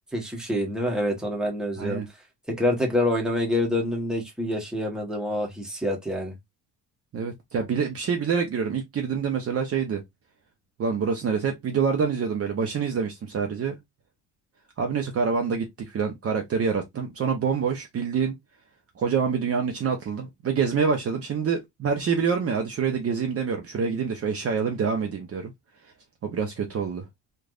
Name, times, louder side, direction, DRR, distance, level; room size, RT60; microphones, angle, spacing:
voice 1, 0.1-2.0 2.5-6.3, left 1 dB, ahead, 1.1 m, -26 dB
voice 2, 7.1-10.0 10.8-13.8 14.8-18.3 19.0-25.5 26.2-27.1, right 6 dB, 35° right, 0.7 m, -26 dB
3.3 x 2.5 x 2.4 m
cardioid pair, 125°, 43 cm